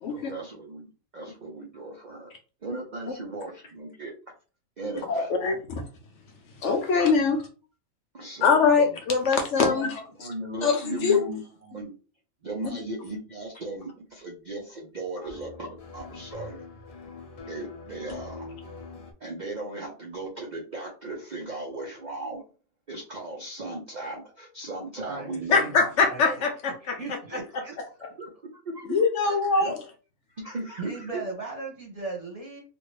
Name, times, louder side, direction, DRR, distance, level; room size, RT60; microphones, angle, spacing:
voice 1, 0.1-2.3 2.6-4.1 4.8-5.3 6.8-6.9 8.1-8.9 9.6-9.9 10.2-11.9 12.4-16.6 17.5-18.6 19.2-22.4 22.9-25.9 26.2-26.4 28.0-29.8 30.3-31.2, right 2 dB, 50° right, -1 dB, 0.6 m, -37 dB
voice 2, 5.1-5.6 6.6-7.4 8.4-10.0 10.6-11.2 25.5-26.9 28.9-29.8, left 5 dB, 65° left, 4 dB, 0.8 m, -22 dB
sound 1, 15.3-19.1, left 3 dB, 50° left, 0.4 m, -43 dB
voice 3, 25.0-26.2 26.8-27.7 30.8-32.6, right 3 dB, 30° right, -2 dB, 1.1 m, -37 dB
2.9 x 2.5 x 3.1 m, 0.36 s
omnidirectional pair, 1.5 m